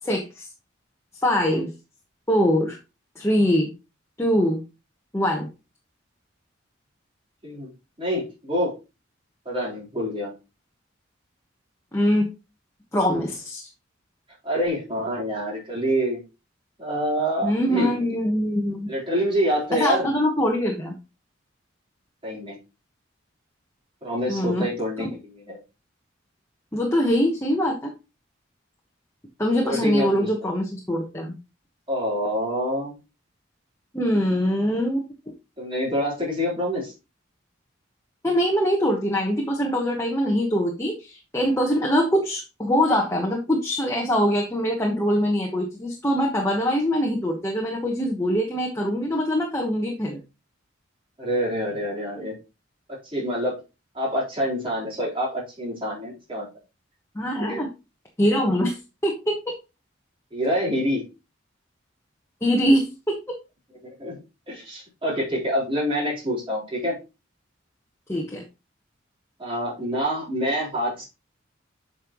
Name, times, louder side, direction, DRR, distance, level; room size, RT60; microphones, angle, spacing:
voice 1, 0.0-0.5 1.2-1.7 2.3-2.8 3.2-3.7 4.2-4.6 5.1-5.5 11.9-12.3 12.9-13.6 17.4-18.9 19.7-20.9 24.3-25.1 26.7-27.9 29.4-31.3 33.9-35.0 38.2-50.2 57.1-57.7 58.2-58.8 59.0-59.4 62.4-62.9 68.1-68.4, equal, 15° left, -1 dB, 1.1 m, -23 dB
voice 2, 8.0-8.7 9.5-10.3 14.4-16.2 16.8-18.2 18.9-20.1 22.2-22.6 24.0-25.6 29.6-30.3 31.9-33.0 35.6-36.9 51.2-52.3 52.9-53.6 53.9-56.5 57.4-57.6 60.3-61.0 63.8-64.2 64.5-67.0 69.4-71.0, equal, 25° right, -5 dB, 3.9 m, -26 dB
8.5 x 5.4 x 3.0 m, 0.28 s
head